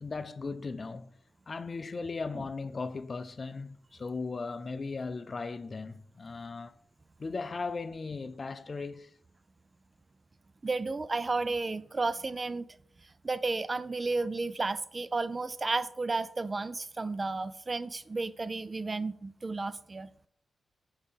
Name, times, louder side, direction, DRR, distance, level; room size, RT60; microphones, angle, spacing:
voice 1, 0.0-1.1 1.5-6.7 7.2-9.1, left 4 dB, 45° left, 0.3 m, -37 dB
voice 2, 10.6-12.7 13.2-20.1, right 3 dB, 40° right, 0.3 m, -32 dB
5.4 x 5.1 x 3.4 m
supercardioid pair, 50°, 0 cm